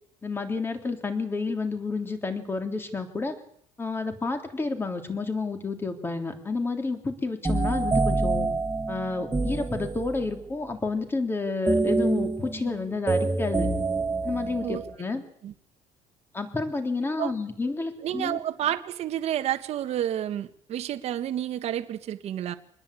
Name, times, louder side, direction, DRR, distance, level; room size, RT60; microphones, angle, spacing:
voice 1, 0.2-3.3 3.8-8.5 8.9-13.7 14.2-15.2 16.3-18.4, left 3 dB, 15° left, 6 dB, 3.2 m, -30 dB
sound 1, 7.4-10.4 11.7-14.9, right 3 dB, 10° right, 1.7 m, -27 dB
voice 2, 18.0-22.5, right 11 dB, 50° right, 7 dB, 1.5 m, -30 dB
25.5 x 20.5 x 8.5 m, 0.66 s
cardioid pair, 155°, 14 cm